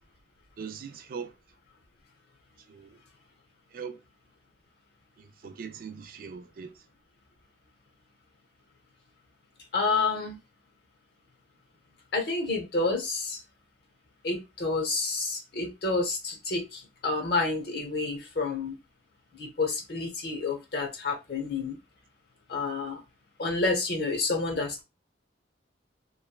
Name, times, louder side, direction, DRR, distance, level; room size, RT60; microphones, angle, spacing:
voice 1, 0.6-1.3 2.7-3.0 3.7-4.0 5.2-6.8, right 6 dB, 50° right, 0.3 m, -41 dB
voice 2, 9.7-10.4 12.1-13.4 14.2-18.7 19.3-21.8 22.5-23.0 23.4-24.8, left 3 dB, 60° left, 0.8 m, -29 dB
3.0 x 2.2 x 2.2 m
head